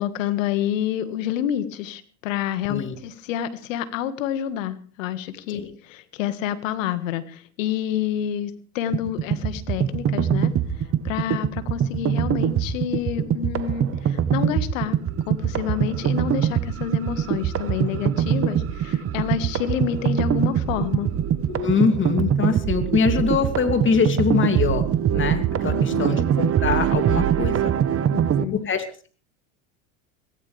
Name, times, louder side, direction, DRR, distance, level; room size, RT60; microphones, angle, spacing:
voice 1, 0.0-10.5 11.0-15.0 15.3-21.1 25.7-26.2 28.1-28.7, left 10 dB, 75° left, 12 dB, 1.7 m, -28 dB
sound 1, 8.9-28.5, right 9 dB, 35° right, 1.1 m, -23 dB
voice 2, 21.5-27.7 28.5-28.8, left 5 dB, 30° left, 7 dB, 2.7 m, -23 dB
23.0 x 16.0 x 3.4 m, 0.41 s
hypercardioid pair, 90°, 39 cm